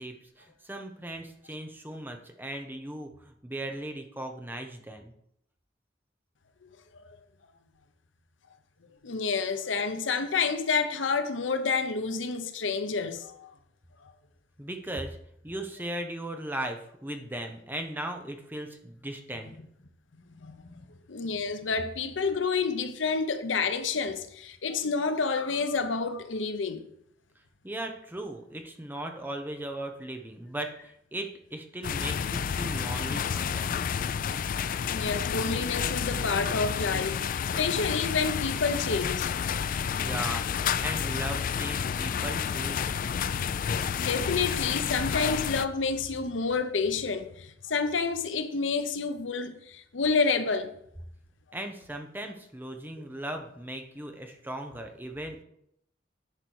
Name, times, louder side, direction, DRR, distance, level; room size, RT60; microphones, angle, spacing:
voice 1, 0.0-5.1 14.6-15.2 15.4-19.5 27.6-33.9 40.0-42.8 51.5-55.4, right 1 dB, 10° right, 0.9 m, -38 dB
voice 2, 9.0-13.5 14.0-14.1 20.4-26.8 34.9-37.3 37.6-39.3 44.0-50.7, left 4 dB, 85° left, 0.8 m, -29 dB
sound 1, 31.8-45.7, left 7 dB, 45° left, 0.3 m, -30 dB
10.0 x 5.1 x 4.7 m
head